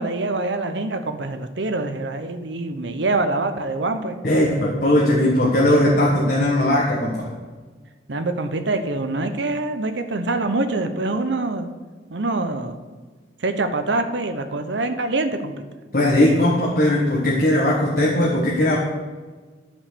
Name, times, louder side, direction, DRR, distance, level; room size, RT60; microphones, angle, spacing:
voice 1, 0.0-4.2 8.1-11.7 12.1-12.8 13.4-15.5, right 2 dB, 85° right, 8 dB, 0.9 m, -25 dB
voice 2, 4.2-7.3 15.9-18.8, left 1 dB, 50° left, -3 dB, 1.4 m, -18 dB
10.5 x 5.3 x 6.8 m, 1.4 s
head